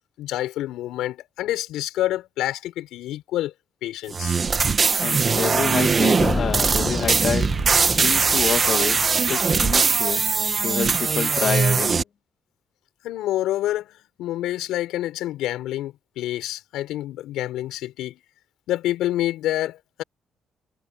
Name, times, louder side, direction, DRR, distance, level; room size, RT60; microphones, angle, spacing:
voice 1, 0.2-3.5 3.8-4.4 13.0-18.2 18.7-20.0, left 14 dB, 90° left, 6.6 m, -27 dB
sound 1, 4.1-12.0, right 5 dB, 40° right, 1.5 m, -21 dB
voice 2, 5.0-7.5 7.9-10.2 10.6-12.0, left 7 dB, 60° left, 2.4 m, -28 dB
sound 2, 6.2-11.5, left 4 dB, 30° left, 6.6 m, -32 dB
cardioid pair, 90°, 0 cm